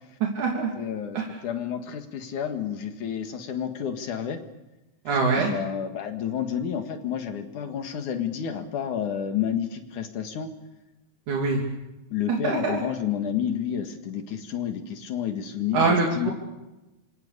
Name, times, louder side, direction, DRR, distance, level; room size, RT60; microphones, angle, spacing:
voice 1, 0.2-0.7 1.1-1.3 5.0-5.5 11.3-11.6 12.3-12.8 15.7-16.3, right 4 dB, 80° right, 0 dB, 4.6 m, -24 dB
voice 2, 0.8-4.4 5.4-10.5 12.1-16.3, left 9 dB, 80° left, 6 dB, 3.3 m, -30 dB
27.0 x 25.0 x 6.8 m, 1.0 s
omnidirectional pair, 3.5 m